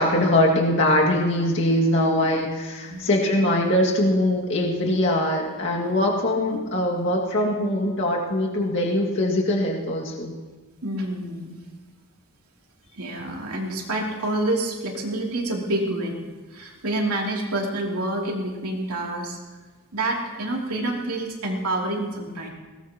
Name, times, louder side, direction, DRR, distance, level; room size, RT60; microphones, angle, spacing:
voice 1, 0.0-10.3, left 1 dB, 55° left, -2 dB, 2.2 m, -22 dB
voice 2, 10.8-11.6 12.9-16.2 16.5-19.4 19.9-22.5, right 1 dB, 90° right, -1 dB, 3.0 m, -27 dB
22.0 x 18.5 x 3.0 m, 1.3 s
head